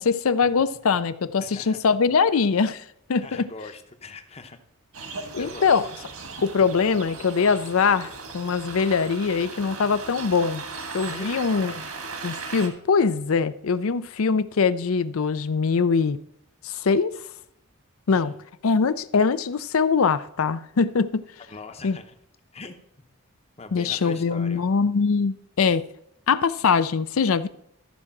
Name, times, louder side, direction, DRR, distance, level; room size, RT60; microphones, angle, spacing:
voice 1, 0.0-2.8 3.1-3.4 5.3-5.8 6.4-10.6 10.9-11.7 12.2-16.2 16.6-17.1 18.1-18.3 18.6-21.2 21.8-22.0 23.7-25.8 26.3-27.5, left 5 dB, 75° left, 0.5 m, -22 dB
voice 2, 1.4-1.8 3.2-4.6 5.2-5.7 11.1-11.8 18.1-18.4 21.5-22.2 22.5-23.1 23.6-24.7, left 3 dB, 30° left, 0.8 m, -42 dB
sound 1, 4.9-12.7, right 4 dB, 80° right, 1.6 m, -37 dB
13.5 x 4.9 x 5.9 m
head